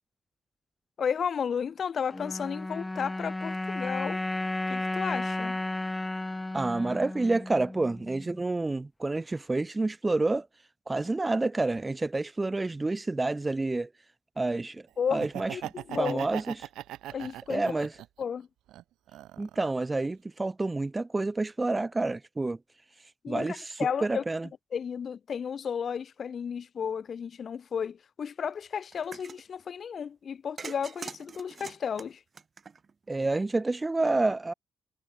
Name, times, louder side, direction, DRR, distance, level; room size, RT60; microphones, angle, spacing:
voice 1, 1.0-4.2 4.7-5.6 15.0-15.2 15.5-16.2 17.1-17.6 18.2-18.5 23.2-24.2 24.7-32.2, left 7 dB, 50° left, 1.5 m, -33 dB
sound 1, 2.1-8.5, left 2 dB, 15° left, 2.1 m, -33 dB
voice 2, 6.5-10.5 10.9-13.9 14.4-14.8 15.1-15.6 16.0-16.7 17.5-17.9 19.4-22.6 23.3-23.7 24.0-24.5 33.1-34.5, right 2 dB, 20° right, 0.3 m, -28 dB
Laughter, 15.1-18.2 18.7-19.8, right 14 dB, 85° right, 0.8 m, -40 dB
sound 2, 28.9-29.4 30.6-33.1, right 5 dB, 35° right, 5.3 m, -43 dB
cardioid pair, 90°, 0 cm